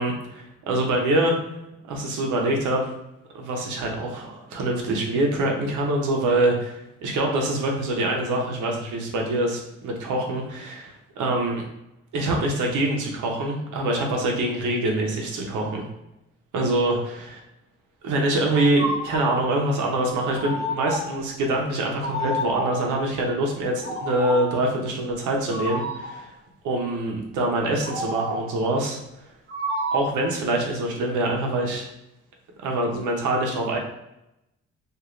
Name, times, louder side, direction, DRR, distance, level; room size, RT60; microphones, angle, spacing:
voice 1, 0.0-1.3 1.8-2.9 3.3-11.6 12.1-15.8 16.5-17.4 18.0-26.3 26.6-29.0 29.9-31.9 32.6-33.8, right 1 dB, 80° right, 0 dB, 0.8 m, -25 dB
sound 1, 18.5-19.4 20.3-21.2 22.0-22.9 23.8-24.6 25.5-26.2 27.8-28.6 29.5-30.3, equal, 35° right, 0.9 m, -30 dB
2.6 x 2.5 x 3.1 m, 0.87 s
cardioid pair, 90°, 30 cm